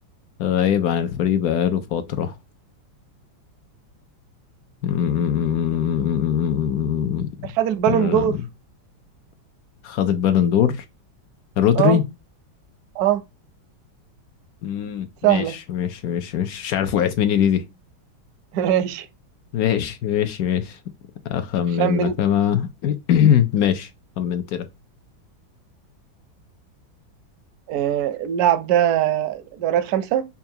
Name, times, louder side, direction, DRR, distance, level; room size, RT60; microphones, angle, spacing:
voice 1, 0.4-2.3 4.8-7.5 7.9-8.4 9.8-10.8 11.6-12.0 14.6-17.6 19.5-20.8 21.2-23.9 24.2-24.7, left 9 dB, 75° left, 0.8 m, -22 dB
voice 2, 7.6-8.4 11.8-12.0 13.0-13.2 15.2-15.5 18.5-19.1 21.8-22.1 27.7-30.3, right 11 dB, 70° right, 0.9 m, -21 dB
5.6 x 2.3 x 2.7 m
omnidirectional pair, 2.2 m